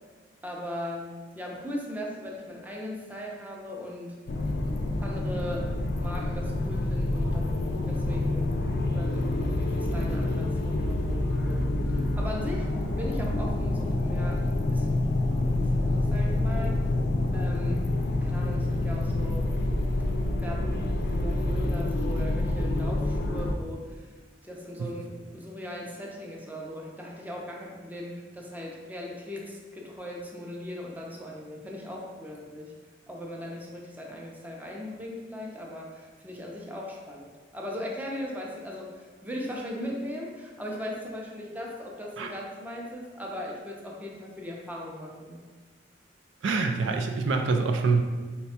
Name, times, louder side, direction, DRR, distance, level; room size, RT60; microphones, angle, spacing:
voice 1, 0.4-4.1 5.0-7.6 7.9-8.5 8.9-11.6 11.9-12.7 13.0-15.0 15.4-16.8 17.3-17.8 18.2-19.6 20.4-24.1 24.4-32.7 33.1-38.9 39.2-45.4, left 1 dB, 10° right, -2 dB, 0.5 m, -38 dB
sound 1, 4.3-23.5, left 2 dB, 60° left, 0.4 m, -27 dB
voice 2, 46.4-48.0, right 4 dB, 85° right, 4 dB, 0.4 m, -25 dB
4.0 x 2.2 x 4.1 m, 1.4 s
head